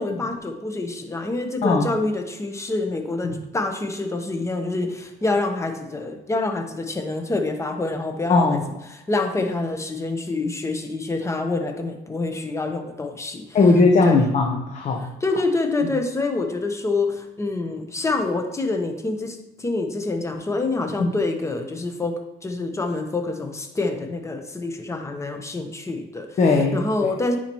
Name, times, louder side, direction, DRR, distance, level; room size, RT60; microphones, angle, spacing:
voice 1, 0.0-8.6 8.9-13.6 14.0-14.2 15.2-22.1 22.4-26.4 26.7-27.4, left 3 dB, 15° left, 5 dB, 1.0 m, -26 dB
voice 2, 8.3-8.6 13.5-15.1 21.0-21.1 26.4-26.8, left 3 dB, 45° left, 1 dB, 0.9 m, -18 dB
9.8 x 4.4 x 3.0 m, 0.97 s
cardioid pair, 110°, 17 cm